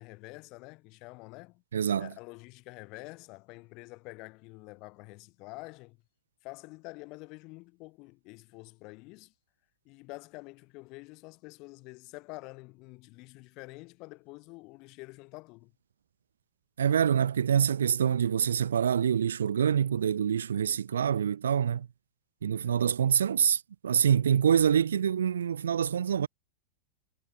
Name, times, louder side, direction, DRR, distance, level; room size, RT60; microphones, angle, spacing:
voice 1, 0.0-1.6 2.0-6.0 6.4-9.3 9.9-15.7 22.6-22.8, left 25 dB, 50° left, 6.8 m, -47 dB
voice 2, 1.7-2.1 16.8-21.9 22.4-26.3, right 8 dB, 80° right, 0.7 m, -26 dB
hypercardioid pair, 95°, 0 cm